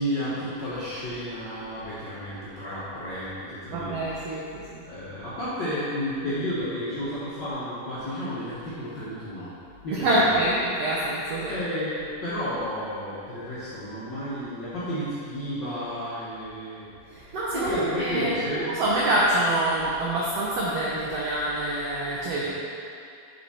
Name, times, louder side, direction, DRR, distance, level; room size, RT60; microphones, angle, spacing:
voice 1, 0.0-4.4 4.8-9.5 9.8-10.4 11.5-16.9 17.5-18.7 22.3-22.5, equal, 65° left, -12 dB, 1.1 m, -32 dB
voice 2, 3.7-4.8 9.9-11.6 17.1-22.5, right 1 dB, 80° right, -6 dB, 1.4 m, -26 dB
7.8 x 5.0 x 4.2 m, 2.5 s
omnidirectional pair, 3.9 m